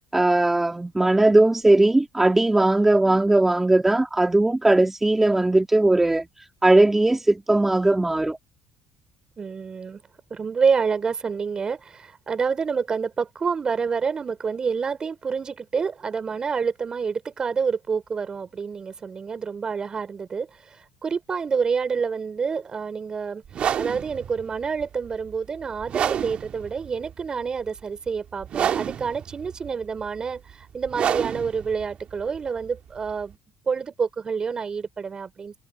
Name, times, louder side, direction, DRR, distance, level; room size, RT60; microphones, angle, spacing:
voice 1, 0.1-6.2 6.6-8.4, right 2 dB, 10° right, 2.3 m, -19 dB
voice 2, 9.4-10.0 10.3-23.4 23.8-33.4 33.7-35.6, right 5 dB, 35° right, 5.4 m, -28 dB
sound 1, 23.5-33.3, right 9 dB, 50° right, 2.3 m, -30 dB
cardioid pair, 100°, 2 cm